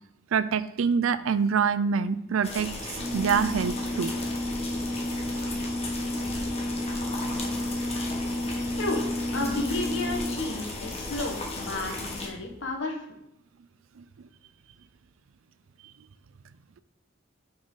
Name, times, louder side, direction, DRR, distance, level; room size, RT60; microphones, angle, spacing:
voice 1, 0.3-4.1 14.0-14.1, right 6 dB, 85° right, 15 dB, 0.4 m, -26 dB
sound 1, 2.4-12.3, left 2 dB, 30° left, 1.4 m, -36 dB
sound 2, 3.0-12.7, left 1 dB, 50° right, 1.7 m, -33 dB
voice 2, 9.3-13.0, left 2 dB, 65° left, 1 dB, 1.5 m, -32 dB
6.3 x 4.8 x 5.6 m, 0.83 s
head